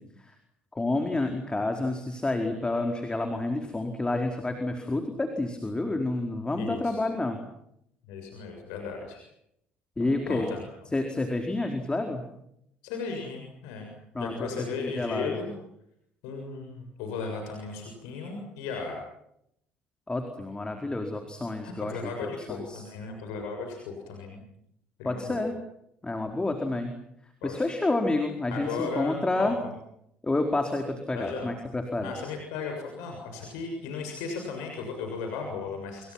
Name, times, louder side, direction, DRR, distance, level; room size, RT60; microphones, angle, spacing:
voice 1, 0.7-7.4 10.0-10.5 10.9-12.3 14.1-15.4 20.1-22.8 25.0-25.5 26.0-27.0 27.4-29.6 30.2-32.1, left 2 dB, 15° left, 4 dB, 4.6 m, -29 dB
voice 2, 6.6-7.0 8.1-9.2 10.0-10.6 12.8-13.9 14.2-15.5 16.2-19.0 21.6-24.4 25.0-25.4 27.4-27.6 28.5-29.7 31.1-31.5 32.0-36.1, left 4 dB, 70° left, 3 dB, 7.0 m, -36 dB
29.5 x 29.0 x 6.0 m, 0.76 s
figure-of-eight pair, 55°, 5 cm